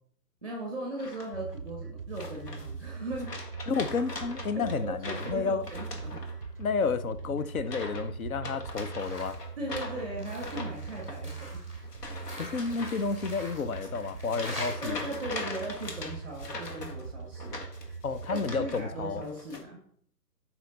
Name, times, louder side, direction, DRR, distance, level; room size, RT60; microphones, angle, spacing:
voice 1, 0.4-3.5 4.5-6.2 9.6-11.6 14.8-17.6 18.3-19.8, right 1 dB, 5° left, 0.9 m, -38 dB
sound 1, 1.0-1.5 2.2-2.9 3.2-6.6 6.9-7.2 7.6-8.1 8.3-18.9 19.2-19.6, left 3 dB, 75° left, 2.0 m, -42 dB
sound 2, 1.3-19.2, right 5 dB, 40° right, 0.4 m, -41 dB
voice 2, 3.7-5.7 6.6-9.4 12.4-15.0 18.0-19.2, left 5 dB, 60° left, 0.8 m, -31 dB
sound 3, 9.0-9.4 9.8-14.8, left 1 dB, 20° left, 2.4 m, -44 dB
8.1 x 5.8 x 3.9 m
hypercardioid pair, 170°, 48 cm